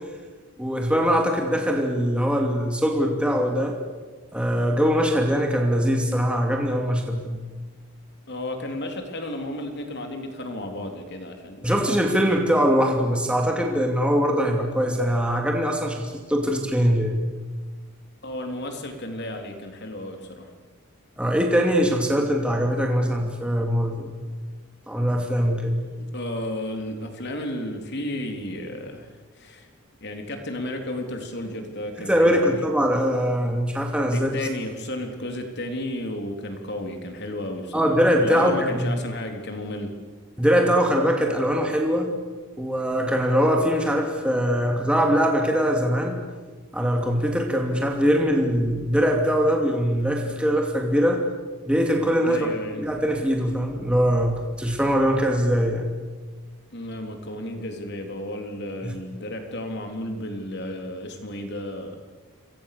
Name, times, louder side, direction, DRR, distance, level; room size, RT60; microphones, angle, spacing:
voice 1, 0.6-3.8 4.3-7.5 11.6-17.3 21.2-24.1 24.9-25.8 32.0-34.3 37.7-39.0 40.4-42.1 42.6-46.2 46.7-51.2 51.7-52.5 52.8-55.9 58.8-58.9, equal, 5° right, 1 dB, 2.7 m, -22 dB
voice 2, 8.3-11.9 18.2-20.5 26.0-29.1 29.4-29.7 30.0-32.7 34.1-37.9 38.2-39.9 52.2-52.9 56.7-62.0, left 1 dB, 50° left, 4 dB, 3.8 m, -33 dB
28.0 x 23.5 x 6.9 m, 1.4 s
head